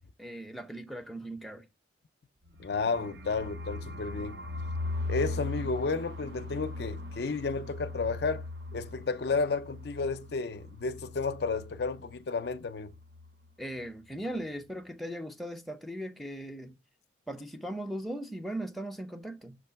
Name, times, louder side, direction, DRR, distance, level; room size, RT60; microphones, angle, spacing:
voice 1, 0.2-1.7 13.6-16.8 17.3-19.6, right 1 dB, ahead, 0.6 m, -38 dB
sound 1, 2.5-12.2 12.5-12.6 12.8-13.3, left 2 dB, 65° right, 0.6 m, -39 dB
voice 2, 2.6-4.4 5.1-8.4 8.7-12.9, left 4 dB, 60° left, 0.5 m, -32 dB
6.2 x 3.1 x 5.7 m
head